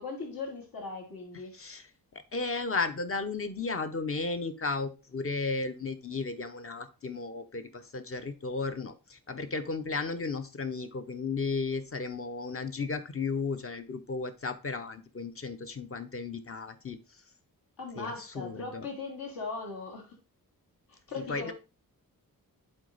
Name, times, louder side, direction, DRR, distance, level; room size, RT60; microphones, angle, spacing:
voice 1, 0.0-1.6 17.8-20.2 20.9-21.5, left 4 dB, 75° left, 2.9 m, -39 dB
voice 2, 2.1-17.0 18.0-18.9 21.3-21.5, left 4 dB, 40° left, 0.7 m, -34 dB
7.9 x 4.3 x 4.0 m
wide cardioid pair, 170°, 35 cm